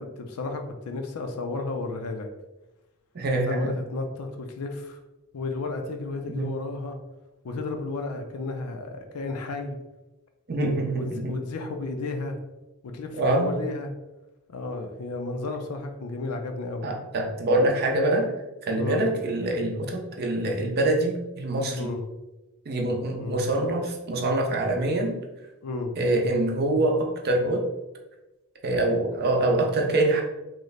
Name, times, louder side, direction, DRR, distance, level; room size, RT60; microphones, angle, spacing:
voice 1, 0.0-2.3 3.5-5.0 5.3-7.0 7.4-9.8 11.0-12.4 12.8-13.9 14.5-16.9 18.8-19.1 21.7-22.1 23.2-23.5 25.6-26.0, left 3 dB, 90° left, 4 dB, 0.4 m, -33 dB
voice 2, 3.1-3.7 6.3-6.6 10.5-11.4 13.2-13.5 16.8-18.3 18.6-21.9 22.7-25.2 26.0-27.7 28.6-30.2, right 1 dB, 45° right, 1 dB, 0.5 m, -25 dB
3.1 x 2.1 x 3.9 m, 1.0 s
head